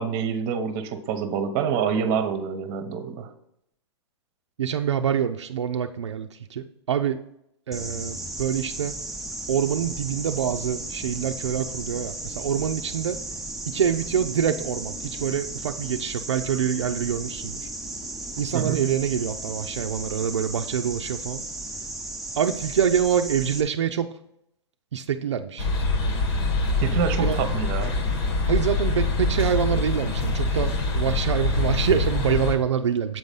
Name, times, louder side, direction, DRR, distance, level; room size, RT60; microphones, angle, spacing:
voice 1, 0.0-3.3 18.5-18.8 26.8-28.0, right 7 dB, 40° right, 10 dB, 0.8 m, -27 dB
voice 2, 4.6-7.2 7.7-9.0 9.5-13.2 13.7-17.6 18.4-21.4 22.4-24.1 24.9-25.7 27.2-27.4 28.5-33.2, right 8 dB, 80° right, 6 dB, 0.5 m, -26 dB
sound 1, 7.7-23.6, right 2 dB, ahead, 0.6 m, -35 dB
sound 2, 25.6-32.5, left 3 dB, 60° left, 1.6 m, -24 dB
7.7 x 4.0 x 5.3 m, 0.78 s
hypercardioid pair, 125°, 15 cm